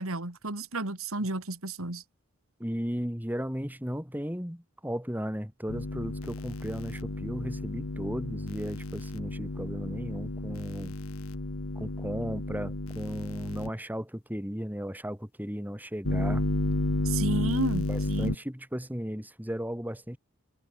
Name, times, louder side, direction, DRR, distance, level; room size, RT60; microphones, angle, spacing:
voice 1, 0.0-2.0 17.0-18.3, right 2 dB, 80° right, 2.9 m, -32 dB
voice 2, 2.6-10.9 11.8-16.4 17.9-20.2, equal, 10° right, 3.6 m, -35 dB
sound 1, 5.7-13.7 16.0-18.3, left 1 dB, 80° left, 2.0 m, -32 dB
head